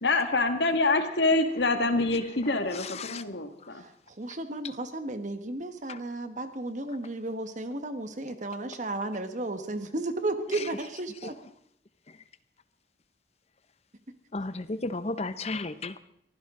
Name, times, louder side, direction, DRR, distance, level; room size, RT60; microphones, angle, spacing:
voice 1, 0.0-3.9, left 2 dB, 80° left, 6 dB, 1.9 m, -26 dB
voice 2, 2.7-3.2 4.6-4.7 5.9-6.0 10.5-10.7 11.2-11.3 12.1-12.2 14.3-16.0, left 3 dB, 35° left, 13 dB, 0.8 m, -34 dB
voice 3, 4.1-11.3, right 2 dB, 45° right, 9 dB, 1.4 m, -33 dB
23.5 x 15.0 x 3.8 m, 0.70 s
head